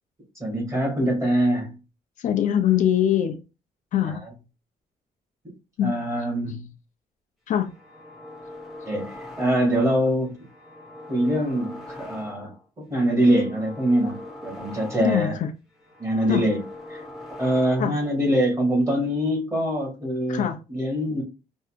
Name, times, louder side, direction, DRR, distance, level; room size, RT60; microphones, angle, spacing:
voice 1, 0.4-1.7 4.0-4.2 5.8-6.7 8.9-10.4 11.1-12.5 12.8-15.4 16.0-16.6 16.9-17.0 17.4-21.2, right 1 dB, 20° right, 2.2 m, -24 dB
voice 2, 2.2-3.4 3.9-4.2 5.8-6.1 7.5-7.7 15.0-15.5 16.3-16.5 17.8-18.0 20.3-20.6, left 10 dB, 55° left, 0.5 m, -23 dB
sound 1, 7.6-9.9 10.3-12.7 13.0-15.4 15.7-18.1, left 1 dB, ahead, 1.3 m, -42 dB
5.5 x 2.7 x 2.5 m
cardioid pair, 140°, 15 cm